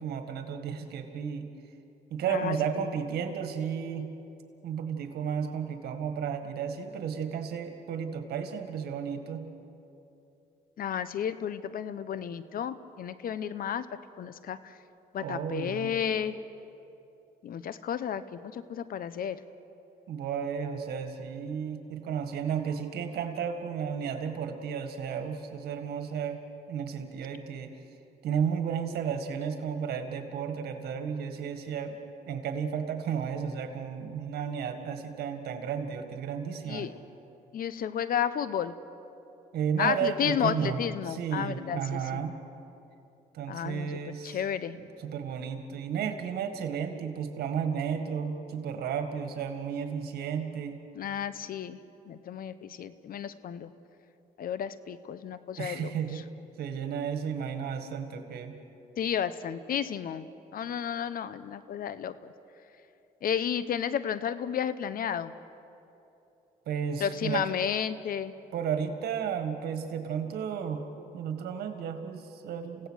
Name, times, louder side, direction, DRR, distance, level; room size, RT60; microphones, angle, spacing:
voice 1, 0.0-1.5 2.1-4.1 4.6-9.4 15.2-15.9 20.1-26.4 26.7-27.7 28.2-32.0 32.3-36.9 39.5-40.8 41.1-42.4 43.3-44.4 44.7-50.8 55.6-56.2 56.6-58.6 66.7-67.6 68.5-70.8 71.1-72.9, right 7 dB, 85° right, 7 dB, 1.9 m, -33 dB
voice 2, 10.8-13.9 14.2-14.7 15.1-16.4 17.4-19.4 36.7-36.9 37.5-38.7 39.8-42.2 43.5-44.8 50.9-51.8 52.1-53.7 54.4-55.9 59.0-60.3 60.5-62.3 63.2-65.3 67.0-68.3, left 8 dB, 65° left, 14 dB, 0.9 m, -32 dB
28.5 x 16.5 x 6.5 m, 2.9 s
cardioid pair, 80°, 16 cm